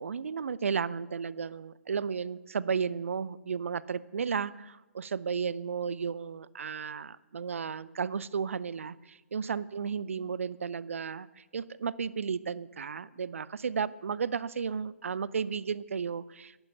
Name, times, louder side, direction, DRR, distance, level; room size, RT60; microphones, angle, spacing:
voice 1, 0.0-16.6, right 6 dB, 65° right, 20 dB, 0.6 m, -34 dB
14.5 x 11.5 x 5.5 m, 1.1 s
figure-of-eight pair, 125°, 8 cm